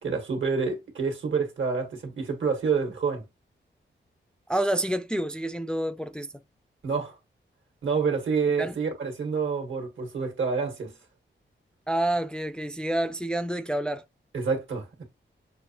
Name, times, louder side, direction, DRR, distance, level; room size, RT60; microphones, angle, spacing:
voice 1, 0.0-3.2 6.8-7.1 7.8-10.9 14.3-15.0, right 5 dB, 75° right, 1.4 m, -28 dB
voice 2, 4.5-6.3 8.6-8.8 11.9-14.0, right 1 dB, 5° left, 0.3 m, -28 dB
6.2 x 2.5 x 2.9 m
wide cardioid pair, 95°, 20 cm